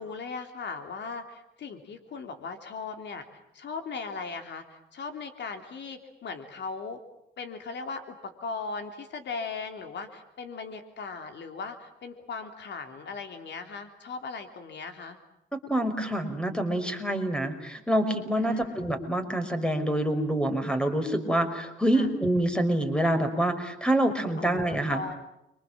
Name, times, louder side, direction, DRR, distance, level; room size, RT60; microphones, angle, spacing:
voice 1, 0.0-3.2 3.5-7.0 7.4-15.2 18.4-18.8 21.9-22.1 24.4-25.1, left 4 dB, 65° left, 7 dB, 3.4 m, -38 dB
voice 2, 15.5-25.0, right 1 dB, 5° left, 8 dB, 5.5 m, -26 dB
29.5 x 25.0 x 7.6 m, 0.85 s
cardioid pair, 90°, 20 cm